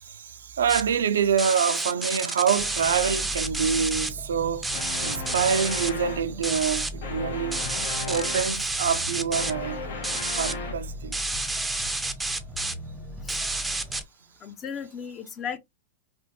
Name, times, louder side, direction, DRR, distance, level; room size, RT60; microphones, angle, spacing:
voice 1, 0.0-7.6 8.1-9.8 10.4-11.2, right 7 dB, 80° right, 0.3 m, -26 dB
sound 1, 0.7-0.8 1.4-4.1 4.6-5.9 6.4-6.9 7.5-9.5 10.0-10.5 11.1-12.7 13.3-14.0, right 2 dB, 5° right, 0.5 m, -29 dB
sound 2, 2.6-14.0, equal, 10° left, 0.9 m, -39 dB
sound 3, 4.7-6.4 7.0-8.5 9.1-10.9, left 4 dB, 70° left, 0.9 m, -35 dB
voice 2, 14.4-15.6, left 7 dB, 30° left, 0.6 m, -35 dB
3.4 x 2.3 x 2.7 m
hypercardioid pair, 105°, 0 cm